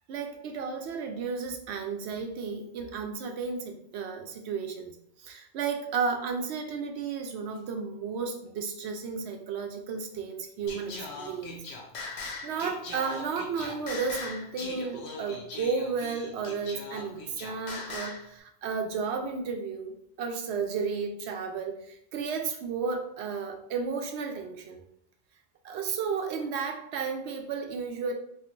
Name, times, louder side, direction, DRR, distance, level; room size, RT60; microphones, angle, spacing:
voice 1, 0.1-11.6 12.4-24.8 25.6-28.1, right 5 dB, 85° right, 5 dB, 0.9 m, -33 dB
Singing, 10.7-18.3, left 3 dB, 80° left, 1.0 m, -40 dB
4.3 x 2.5 x 2.5 m, 0.72 s
omnidirectional pair, 1.1 m